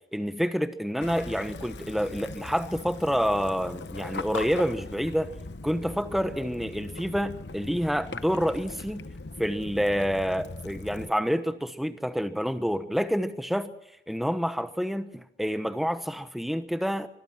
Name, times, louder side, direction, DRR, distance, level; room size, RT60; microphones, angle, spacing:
voice 1, 0.1-5.3 5.6-9.0 9.4-13.7 14.1-17.1, equal, ahead, 1.2 m, -28 dB
Waves surf / Splash splatter / Trickle dribble, 1.0-11.1, left 3 dB, 90° left, 1.0 m, -40 dB
25.0 x 22.0 x 6.0 m
head